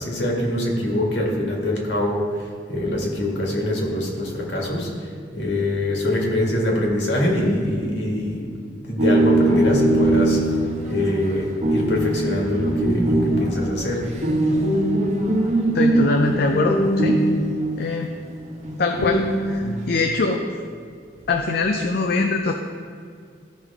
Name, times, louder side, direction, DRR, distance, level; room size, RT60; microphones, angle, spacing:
voice 1, 0.0-2.4 2.7-4.9 5.3-8.4 8.9-10.4 10.9-14.0, left 1 dB, 75° left, -2 dB, 2.0 m, -24 dB
sound 1, 9.0-17.9 18.6-20.0, right 1 dB, 40° right, 1.2 m, -21 dB
voice 2, 15.7-17.2 17.7-18.1 18.8-20.4 21.3-22.5, left 3 dB, 60° left, 3 dB, 0.5 m, -22 dB
14.5 x 5.3 x 3.6 m, 2.2 s
head